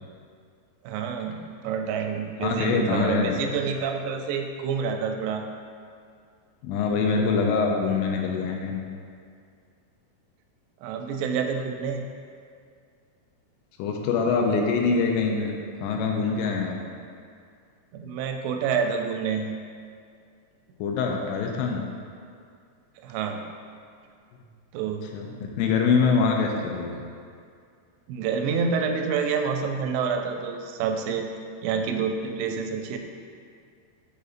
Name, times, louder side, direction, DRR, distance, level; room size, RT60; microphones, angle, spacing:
voice 1, 0.8-5.5 10.8-12.0 17.9-19.5 23.0-23.4 24.7-25.1 28.1-31.3 31.6-33.0, right 6 dB, 90° right, 4 dB, 2.8 m, -28 dB
voice 2, 2.4-3.4 6.6-8.8 13.8-15.5 15.8-16.8 20.8-21.8 25.1-27.0, left 5 dB, 85° left, 1 dB, 2.6 m, -24 dB
6.8 x 6.3 x 2.5 m, 2.3 s
omnidirectional pair, 5.0 m